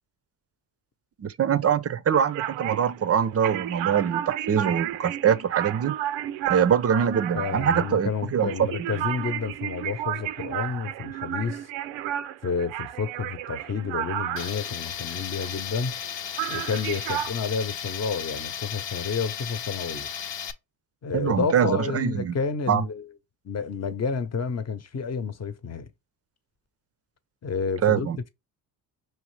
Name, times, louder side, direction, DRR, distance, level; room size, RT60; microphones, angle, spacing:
voice 1, 1.2-5.9 6.5-8.7 21.1-22.3 22.7-22.8 27.8-28.2, right 8 dB, 30° right, 0.6 m, -23 dB
sound 1, 2.1-16.1 16.4-17.3, right 12 dB, 75° right, 0.6 m, -32 dB
voice 2, 7.3-11.7 12.4-16.0 16.5-20.1 21.0-23.0 23.4-25.9 27.4-28.3, left 5 dB, 35° left, 0.9 m, -30 dB
Tools, 14.4-20.5, left 8 dB, 65° left, 0.8 m, -35 dB
5.0 x 3.2 x 3.2 m
supercardioid pair, 65°, 47 cm